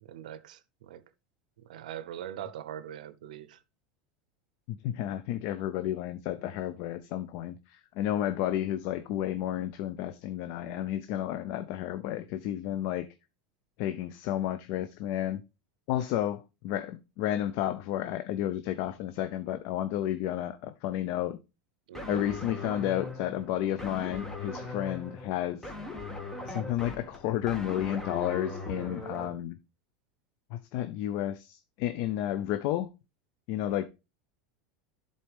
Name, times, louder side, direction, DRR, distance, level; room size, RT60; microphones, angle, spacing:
voice 1, 0.0-1.0 1.6-3.6 21.9-22.2 33.6-33.9, right 10 dB, 85° right, 0.6 m, -42 dB
voice 2, 4.7-13.1 13.8-15.4 15.9-21.4 22.1-25.7 26.5-29.6 30.5-32.9 33.5-33.9, left 12 dB, 60° left, 0.5 m, -32 dB
sound 1, 21.9-29.3, left 2 dB, 10° left, 1.6 m, -39 dB
11.0 x 4.1 x 3.4 m
supercardioid pair, 115°, 4 cm